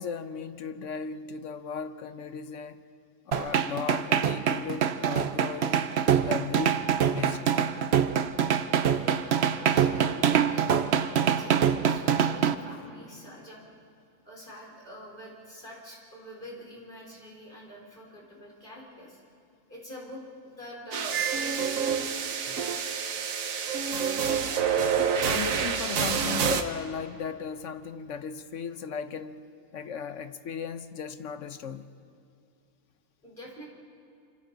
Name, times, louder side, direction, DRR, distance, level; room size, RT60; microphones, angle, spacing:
voice 1, 0.0-2.8 3.3-5.9 6.2-6.8 7.1-7.5 25.2-29.4 29.7-31.9, left 6 dB, 65° left, 10 dB, 1.1 m, -36 dB
sound 1, 3.3-12.5, right 8 dB, 55° right, 0.9 m, -24 dB
voice 2, 8.9-13.6 14.2-19.2 19.7-22.1 33.2-33.7, equal, 35° left, -3 dB, 4.2 m, -45 dB
sound 2, 20.9-26.6, right 7 dB, 70° right, 1.4 m, -27 dB
27.5 x 26.0 x 4.0 m, 2.6 s
omnidirectional pair, 1.5 m